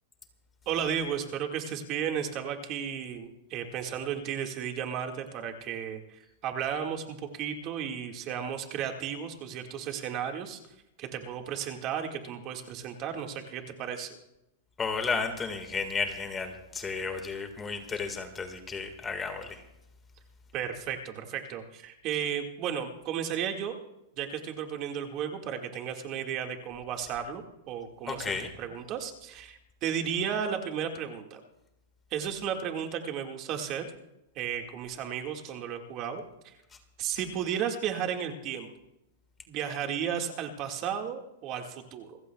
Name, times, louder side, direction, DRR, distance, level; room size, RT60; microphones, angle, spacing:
voice 1, 0.7-10.6 11.0-14.2 20.5-23.8 24.2-28.3 28.6-31.4 32.1-33.9 34.4-36.5 37.0-38.7 39.5-42.2, right 8 dB, 35° right, 4 dB, 1.8 m, -34 dB
voice 2, 14.8-19.6 28.1-28.5, left 5 dB, 15° left, 6 dB, 1.7 m, -33 dB
28.0 x 15.0 x 2.3 m, 0.86 s
supercardioid pair, 150°, 0 cm